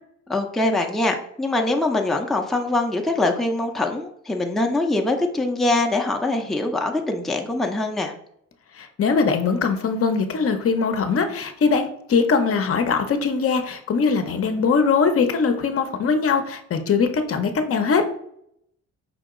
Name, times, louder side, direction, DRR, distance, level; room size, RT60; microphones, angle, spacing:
voice 1, 0.3-8.1, left 2 dB, ahead, 2 dB, 0.6 m, -23 dB
voice 2, 8.7-18.0, left 5 dB, 50° left, 7 dB, 0.7 m, -21 dB
5.1 x 2.8 x 3.7 m, 0.70 s
cardioid pair, 90°, 30 cm